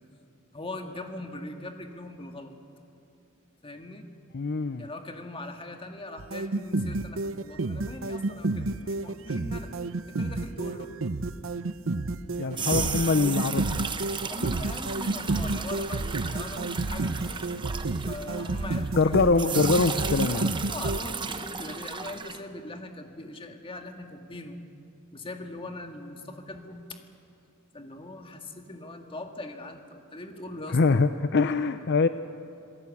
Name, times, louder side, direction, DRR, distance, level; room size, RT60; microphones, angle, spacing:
voice 1, 0.5-2.5 3.6-4.0 4.8-9.7 10.1-10.9 14.3-17.4 18.0-19.3 20.7-24.6 25.1-27.0 27.7-31.1, left 2 dB, 25° left, 4 dB, 1.9 m, -41 dB
voice 2, 4.3-4.8 12.4-13.9 19.0-20.5 30.7-32.1, left 4 dB, 55° left, 11 dB, 0.6 m, -23 dB
sound 1, 6.2-21.0, right 2 dB, 65° right, 0.8 m, -30 dB
sound 2, 12.3-19.0 19.4-22.4, right 5 dB, 25° right, 1.0 m, -35 dB
27.0 x 17.5 x 8.5 m, 2.6 s
head